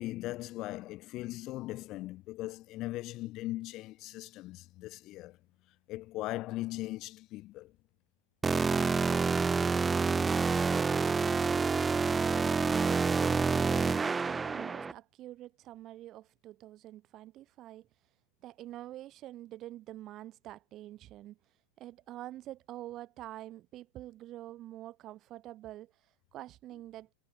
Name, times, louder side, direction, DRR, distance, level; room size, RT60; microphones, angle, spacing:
voice 1, 0.0-5.4 5.9-7.7, left 17 dB, 35° left, 0.8 m, -39 dB
sound 1, 8.4-14.9, right 4 dB, 15° right, 0.3 m, -28 dB
voice 2, 12.2-17.9 18.4-27.1, right 14 dB, 35° right, 5.9 m, -47 dB
figure-of-eight pair, 90°, 0 cm